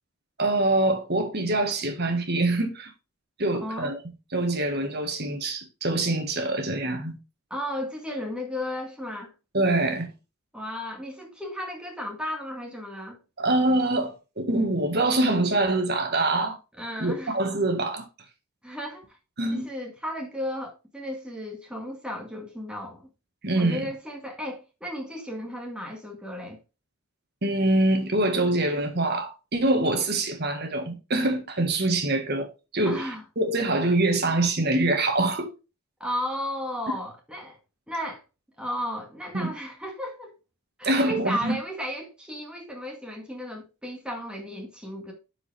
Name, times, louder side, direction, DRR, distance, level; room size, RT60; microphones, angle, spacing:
voice 1, 0.4-2.9 3.4-4.0 4.3-7.2 9.5-10.1 13.4-16.6 17.0-18.0 19.4-19.7 23.4-23.9 27.4-33.1 33.4-35.5 36.9-37.0 39.3-39.5 40.8-41.6, right 2 dB, 50° right, 1.6 m, -24 dB
voice 2, 3.6-3.9 7.5-9.3 10.5-13.2 16.8-17.4 18.6-19.1 19.5-23.1 23.6-26.6 32.9-33.2 36.0-37.6 37.9-38.2 38.6-40.3 40.8-45.1, equal, 5° right, 1.8 m, -34 dB
9.5 x 4.9 x 3.4 m
head